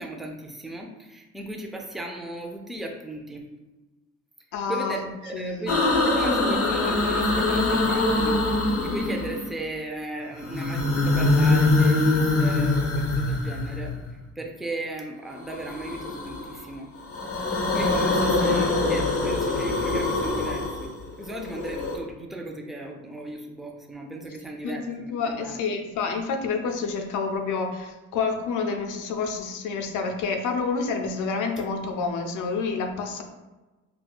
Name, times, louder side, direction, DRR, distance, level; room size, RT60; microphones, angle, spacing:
voice 1, 0.0-3.5 4.7-16.9 17.7-25.6, right 1 dB, ahead, 1 dB, 0.4 m, -36 dB
voice 2, 4.5-5.1 5.3-5.7 24.6-33.2, left 4 dB, 80° left, 4 dB, 0.5 m, -28 dB
sound 1, 5.7-9.6 10.4-14.1 15.5-16.6 17.0-22.0, left 2 dB, 50° left, 0.9 m, -23 dB
4.1 x 2.3 x 2.3 m, 1.1 s
cardioid pair, 90°, 30 cm